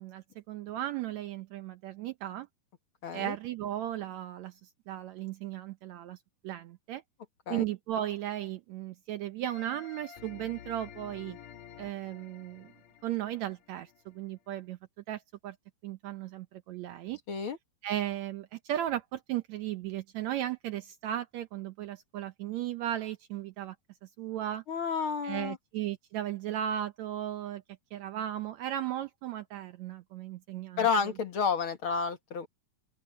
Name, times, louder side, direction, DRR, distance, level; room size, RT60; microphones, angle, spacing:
voice 1, 0.0-2.5 3.1-6.2 6.4-7.0 7.5-11.4 11.8-12.7 13.0-14.8 15.1-15.5 15.8-17.2 17.8-23.7 24.2-24.6 25.2-27.6 27.9-30.9, right 12 dB, 75° right, 1.7 m, -36 dB
voice 2, 3.0-3.4 7.5-7.6 17.3-17.6 24.7-25.6 30.8-32.5, left 6 dB, 45° left, 2.1 m, -30 dB
sound 1, 9.4-14.2, left 9 dB, 70° left, 3.2 m, -51 dB
open air
omnidirectional pair, 3.9 m